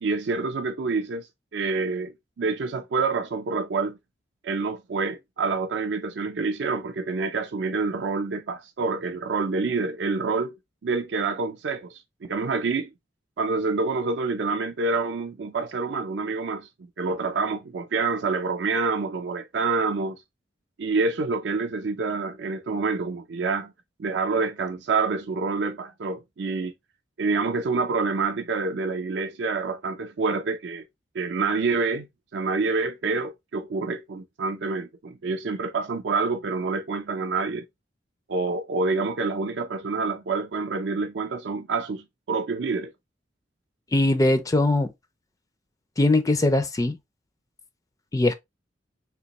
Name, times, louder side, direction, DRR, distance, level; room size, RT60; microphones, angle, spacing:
voice 1, 0.0-4.0 4.4-10.6 10.8-12.9 13.4-16.7 17.0-20.2 20.8-23.7 24.0-26.7 27.2-30.9 31.1-32.1 32.3-37.6 38.3-42.9, right 4 dB, 70° right, 0.5 m, -27 dB
voice 2, 43.9-44.9 46.0-47.0 48.1-48.3, left 2 dB, 20° left, 0.3 m, -21 dB
3.4 x 2.9 x 2.9 m
head